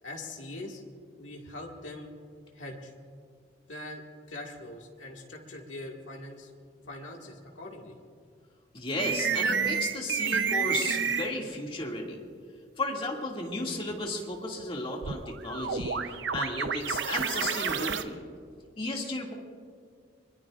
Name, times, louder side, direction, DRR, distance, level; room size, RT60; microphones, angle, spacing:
voice 1, 0.0-0.8 1.2-2.1 2.5-2.9 3.7-6.5 6.9-8.0, left 1 dB, 85° left, -1 dB, 2.0 m, -42 dB
voice 2, 8.7-12.2 12.8-18.2 18.8-19.3, left 2 dB, 30° left, -1 dB, 2.2 m, -34 dB
sound 1, 9.0-11.3 15.0-18.0, right 6 dB, 65° right, 0.7 m, -29 dB
24.5 x 22.0 x 2.5 m, 2.1 s
head